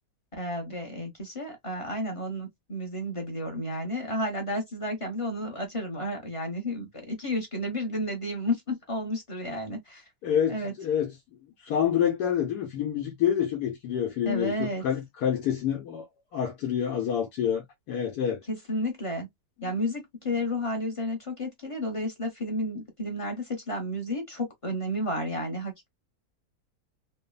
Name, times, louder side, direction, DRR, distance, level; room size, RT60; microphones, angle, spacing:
voice 1, 0.3-10.0 10.5-10.7 14.2-14.8 18.5-19.3 19.6-25.9, left 1 dB, 30° left, 0.7 m, -32 dB
voice 2, 10.2-11.1 11.4-16.1 16.3-18.4 19.6-19.7, left 9 dB, 85° left, 1.2 m, -28 dB
3.1 x 2.1 x 2.2 m
omnidirectional pair, 1.6 m